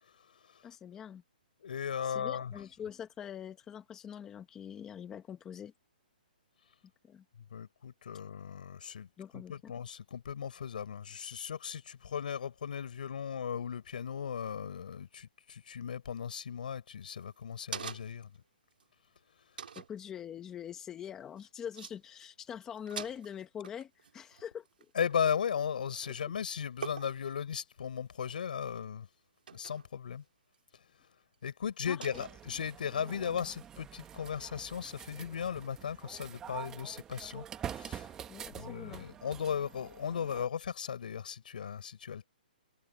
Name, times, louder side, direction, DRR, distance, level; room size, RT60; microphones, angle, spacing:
voice 1, 0.6-1.2 2.0-5.7 7.0-7.2 9.2-9.7 19.7-24.7 26.2-26.3 31.9-32.2 38.3-39.1, left 8 dB, 10° left, 1.2 m, -44 dB
voice 2, 1.6-2.5 7.5-9.1 9.3-18.3 25.0-29.1 29.5-30.2 31.4-38.2 38.5-42.3, left 7 dB, 65° left, 5.4 m, -37 dB
sound 1, 17.0-18.4 18.8-18.9 19.6-20.0 21.4-21.5 21.7-22.0 22.2-22.5 22.7-25.6 25.9-26.3 26.8-27.4 28.1-28.6 29.5-29.9 30.5-30.6 32.0-32.7, right 7 dB, 75° right, 2.4 m, -45 dB
sound 2, 32.1-40.5, right 9 dB, 10° right, 1.2 m, -46 dB
hypercardioid pair, 170°, 5 cm